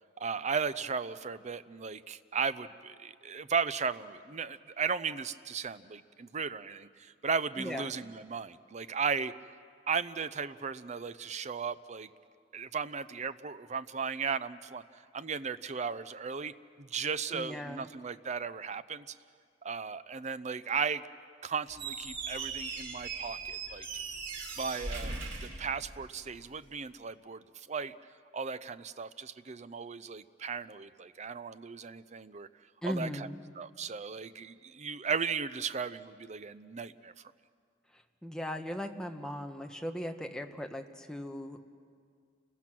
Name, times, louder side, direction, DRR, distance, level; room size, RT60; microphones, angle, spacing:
voice 1, 0.2-9.3 9.9-12.1 12.5-14.8 15.1-16.5 16.8-19.0 19.6-21.0 21.4-23.9 24.6-25.1 25.4-27.9 28.3-32.5 32.8-33.3 33.6-37.1, right 5 dB, 40° right, 14 dB, 0.6 m, -36 dB
voice 2, 7.6-7.9 17.3-17.9 32.8-33.4 38.2-41.7, equal, 5° left, 4 dB, 1.1 m, -38 dB
Squeak, 21.7-26.4, right 4 dB, 80° right, 3.3 m, -39 dB
30.0 x 21.5 x 6.1 m, 2.2 s
head